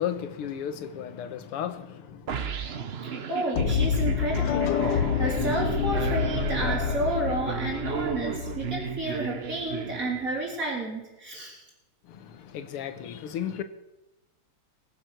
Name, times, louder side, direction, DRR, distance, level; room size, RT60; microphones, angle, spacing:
voice 1, 0.0-2.6 12.1-13.6, left 9 dB, 85° left, 2.0 m, -34 dB
sound 1, 2.3-10.6, right 7 dB, 85° right, 0.5 m, -34 dB
voice 2, 3.0-11.6, right 2 dB, 35° right, 4.0 m, -31 dB
sound 2, 3.5-9.5, left 7 dB, 60° left, 1.6 m, -28 dB
21.0 x 7.9 x 6.1 m
omnidirectional pair, 2.4 m